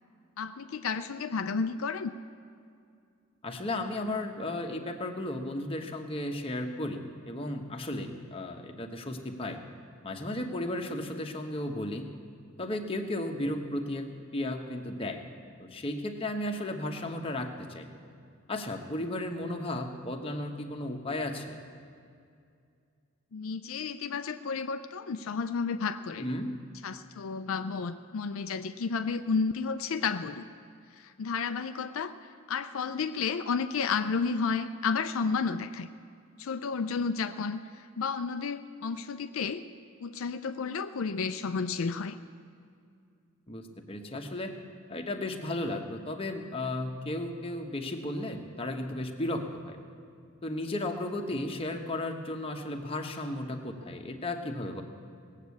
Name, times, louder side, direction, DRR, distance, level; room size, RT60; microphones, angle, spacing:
voice 1, 0.4-2.1 23.3-26.2 26.8-30.4 31.0-35.9 36.4-39.6 40.0-42.2, left 5 dB, 80° left, 9 dB, 0.5 m, -32 dB
voice 2, 3.4-9.6 10.0-12.1 12.6-14.1 14.3-15.3 15.6-17.9 18.5-21.6 26.1-26.5 43.5-44.5 44.9-49.8 50.4-54.8, left 1 dB, 25° left, 3 dB, 1.1 m, -34 dB
18.5 x 7.5 x 8.3 m, 2.4 s
head